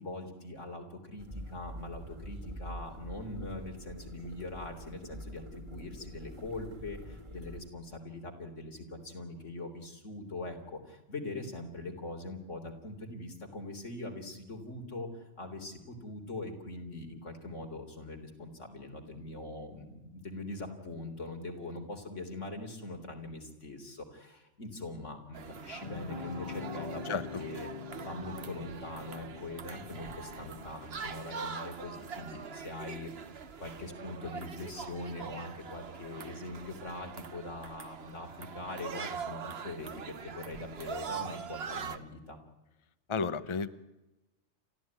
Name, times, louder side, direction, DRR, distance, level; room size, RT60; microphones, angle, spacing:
voice 1, 0.0-42.4, left 2 dB, 90° left, 4 dB, 3.9 m, -42 dB
sound 1, 1.2-7.7, equal, 40° right, 2.5 m, -46 dB
sound 2, 25.3-42.0, right 6 dB, 60° right, 1.3 m, -43 dB
sound 3, 25.8-31.3, left 7 dB, 45° left, 1.3 m, -45 dB
voice 2, 43.1-43.7, left 5 dB, 30° left, 13 dB, 0.9 m, -32 dB
29.5 x 13.5 x 9.6 m, 0.99 s
omnidirectional pair, 1.2 m